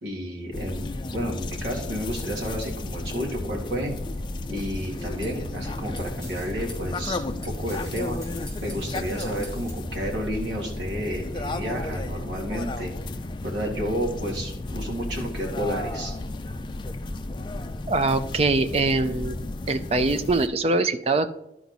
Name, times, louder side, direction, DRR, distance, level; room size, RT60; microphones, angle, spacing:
voice 1, 0.0-3.9 4.5-8.2 8.6-12.9 13.4-16.1, equal, 90° right, -1 dB, 2.3 m, -31 dB
sound 1, 0.5-20.5, left 2 dB, 25° left, 0.4 m, -33 dB
sound 2, 4.6-9.7, equal, 15° right, 3.0 m, -46 dB
voice 2, 17.9-19.4 19.7-21.3, right 3 dB, 35° right, 10 dB, 0.4 m, -23 dB
12.0 x 4.6 x 4.0 m, 0.86 s
head